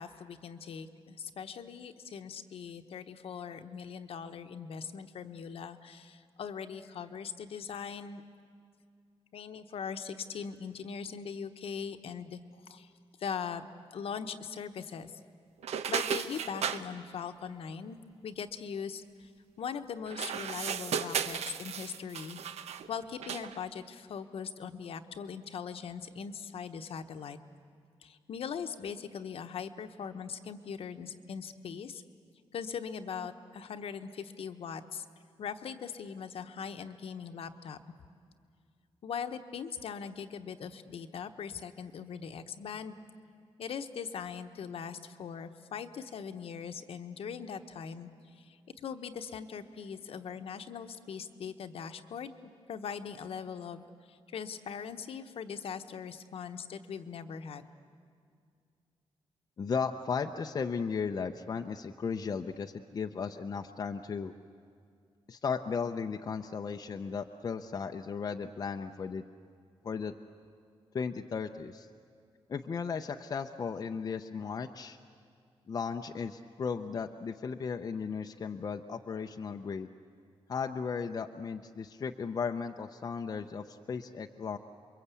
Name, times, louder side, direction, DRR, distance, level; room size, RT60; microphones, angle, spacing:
voice 1, 0.0-8.2 9.3-12.9 13.2-13.6 13.9-15.1 15.9-18.0 18.2-19.3 19.6-22.4 22.9-27.4 28.0-32.0 32.5-35.0 35.4-37.8 39.0-43.0 43.6-48.1 48.4-52.3 52.7-53.8 54.1-57.7, left 6 dB, 60° left, 8 dB, 1.1 m, -40 dB
sound 1, 15.6-16.8 20.1-22.9 23.2-23.6, right 7 dB, 80° right, 0.9 m, -35 dB
voice 2, 59.6-64.3 65.3-69.2 69.8-70.1 70.9-71.9 72.5-75.0 75.7-79.9 80.5-84.6, left 5 dB, 35° left, 5 dB, 0.6 m, -35 dB
28.5 x 23.0 x 8.3 m, 2.3 s
wide cardioid pair, 175°, 11 cm